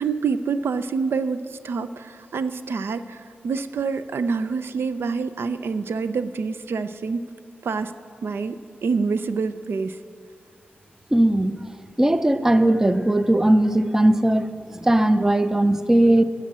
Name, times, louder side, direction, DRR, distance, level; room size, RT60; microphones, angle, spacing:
voice 1, 0.0-7.2 7.6-7.9 8.2-10.0, right 5 dB, 75° right, 11 dB, 0.5 m, -26 dB
voice 2, 11.1-11.6 12.0-16.2, right 1 dB, 10° right, 11 dB, 0.5 m, -18 dB
13.0 x 8.6 x 7.4 m, 2.2 s
wide cardioid pair, 120°, 4 cm